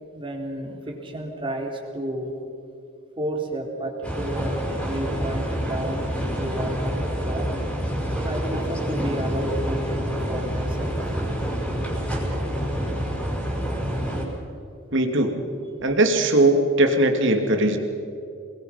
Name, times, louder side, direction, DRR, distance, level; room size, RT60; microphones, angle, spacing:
voice 1, 0.1-2.3 3.2-7.0 7.2-7.6 8.2-11.0, right 1 dB, 25° right, 1 dB, 3.6 m, -31 dB
sound 1, 4.0-14.2, equal, 5° left, 5.6 m, -27 dB
voice 2, 14.9-15.4 15.8-17.8, right 1 dB, 60° right, 5 dB, 2.8 m, -19 dB
28.5 x 21.5 x 6.0 m, 2.6 s
head